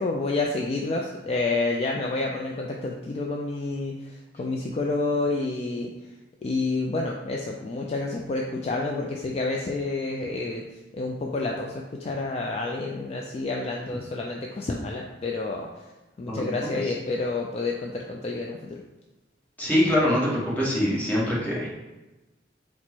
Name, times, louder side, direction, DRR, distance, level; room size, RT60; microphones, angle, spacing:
voice 1, 0.0-5.9 6.4-10.6 10.9-15.7 16.2-18.8, left 3 dB, 35° left, -1 dB, 0.3 m, -29 dB
voice 2, 19.6-21.7, left 1 dB, 10° left, -6 dB, 1.1 m, -23 dB
4.3 x 2.1 x 4.4 m, 1.1 s
head